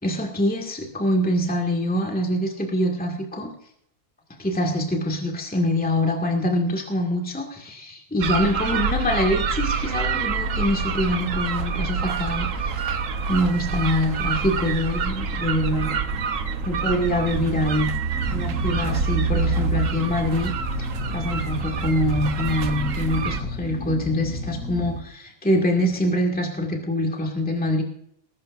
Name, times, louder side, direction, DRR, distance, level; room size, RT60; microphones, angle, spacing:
voice 1, 0.0-3.5 4.4-13.0 13.3-15.9 16.7-17.9 18.3-20.5 20.8-27.8, left 1 dB, 5° left, 1 dB, 1.9 m, -24 dB
sound 1, 8.2-23.4, right 5 dB, 70° right, 1.3 m, -26 dB
sound 2, 18.1-25.0, left 1 dB, 80° left, 5.9 m, -32 dB
20.0 x 13.0 x 2.6 m, 0.69 s
omnidirectional pair, 1.4 m